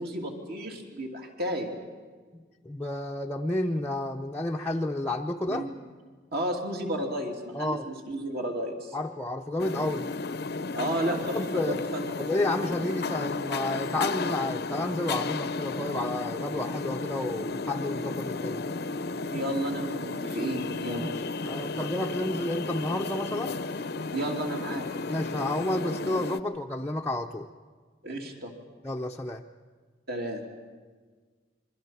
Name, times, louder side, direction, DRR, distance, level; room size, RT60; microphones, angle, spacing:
voice 1, 0.0-1.7 5.5-5.8 6.3-8.9 10.7-11.4 11.9-12.2 19.3-21.1 24.1-24.9 28.0-28.5 30.1-30.4, right 1 dB, 55° right, 1 dB, 3.0 m, -32 dB
voice 2, 2.6-5.7 7.5-7.9 8.9-10.1 11.3-11.8 12.2-18.7 21.0-23.6 25.1-27.5 28.8-29.4, left 1 dB, 10° left, 0 dB, 0.6 m, -31 dB
sound 1, 9.6-26.4, left 3 dB, 55° left, 0.7 m, -33 dB
27.5 x 23.5 x 5.8 m, 1.5 s
head